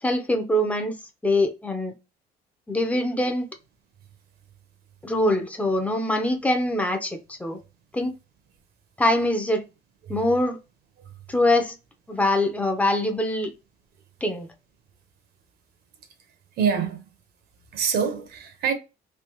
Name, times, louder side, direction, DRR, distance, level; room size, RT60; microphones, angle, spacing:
voice 1, 0.0-0.9 1.2-1.9 2.7-3.5 5.0-7.6 7.9-8.2 9.0-9.6 10.1-10.6 11.3-11.8 12.1-13.5 14.2-14.5, left 1 dB, 10° left, 0.7 m, -23 dB
voice 2, 16.6-17.1 17.7-18.7, right 6 dB, 70° right, 1.0 m, -25 dB
3.4 x 2.9 x 3.0 m
cardioid pair, 110°, 17 cm